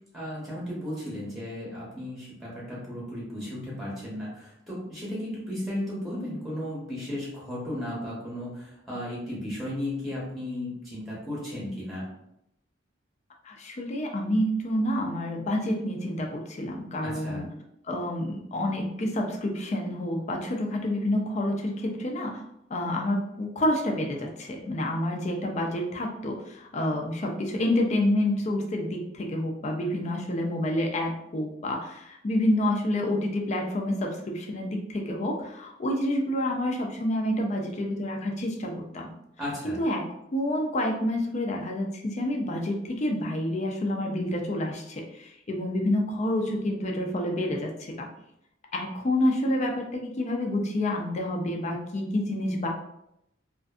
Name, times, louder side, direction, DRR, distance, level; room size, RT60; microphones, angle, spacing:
voice 1, 0.1-12.1 17.0-17.4 39.4-39.8, left 1 dB, ahead, -7 dB, 0.8 m, -35 dB
voice 2, 13.4-17.5 17.8-22.4 22.7-39.1 39.6-40.0 40.3-48.1 48.7-52.7, left 1 dB, 40° left, 1 dB, 0.4 m, -28 dB
2.5 x 2.5 x 2.3 m, 0.79 s
head